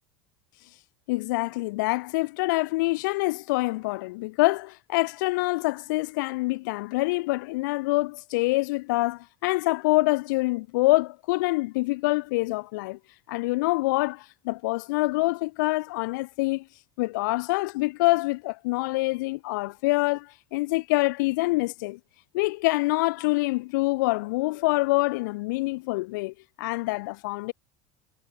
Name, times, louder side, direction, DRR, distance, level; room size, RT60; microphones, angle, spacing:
voice 1, 1.1-13.0 13.3-16.6 17.0-22.0 22.3-27.5, left 22 dB, 80° left, 3.1 m, -26 dB
supercardioid pair, 110°, 10 cm